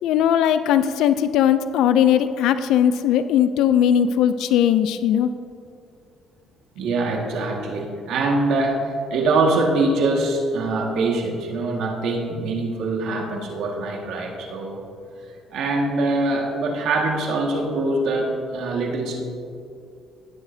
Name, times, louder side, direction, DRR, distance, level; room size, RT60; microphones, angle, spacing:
voice 1, 0.0-5.3, left 9 dB, 80° left, 11 dB, 0.4 m, -19 dB
voice 2, 6.7-14.9 15.5-19.2, right 2 dB, 75° right, 0 dB, 1.7 m, -23 dB
16.5 x 8.1 x 2.7 m, 2.5 s
cardioid pair, 105°, 0 cm